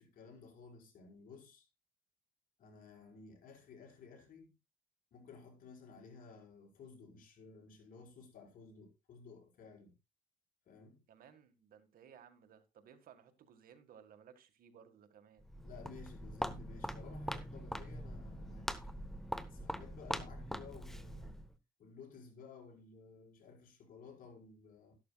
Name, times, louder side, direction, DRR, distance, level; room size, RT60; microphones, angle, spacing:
voice 1, 0.0-1.7 2.6-4.5 5.1-10.0 10.7-11.0 15.6-18.7 19.5-21.4 21.8-25.0, left 5 dB, 55° left, 5.0 m, -55 dB
voice 2, 11.1-15.4, right 8 dB, 60° right, 1.8 m, -60 dB
Walk footsteps, 15.4-21.5, equal, ahead, 0.9 m, -42 dB
13.0 x 12.0 x 2.3 m
cardioid pair, 110°, 17 cm